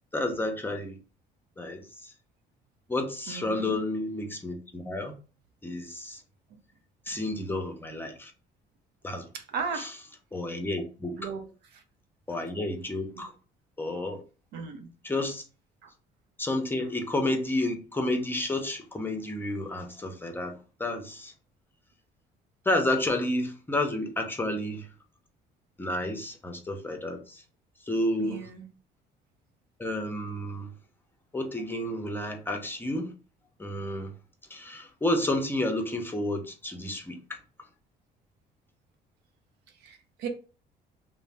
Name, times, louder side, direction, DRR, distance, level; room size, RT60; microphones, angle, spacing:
voice 1, 0.1-0.9 1.6-2.1 2.9-5.1 5.6-6.2 7.1-8.3 9.0-9.2 9.8-9.9 10.3-11.2 12.3-13.3 13.8-14.2 15.0-15.4 16.4-21.3 22.7-24.8 25.8-27.4 27.9-28.4 29.8-30.7 31.3-33.1 33.6-34.1 34.5-37.2, left 1 dB, 10° left, 0.6 m, -30 dB
voice 2, 3.3-3.8 7.1-7.2 9.3-9.9 11.2-11.5 11.7-11.8 12.3-12.4 13.2-13.3 14.5-14.9 15.8-15.9 28.2-28.7 39.8-40.3, right 6 dB, 80° right, 0.6 m, -36 dB
2.6 x 2.0 x 3.2 m
cardioid pair, 110°, 17 cm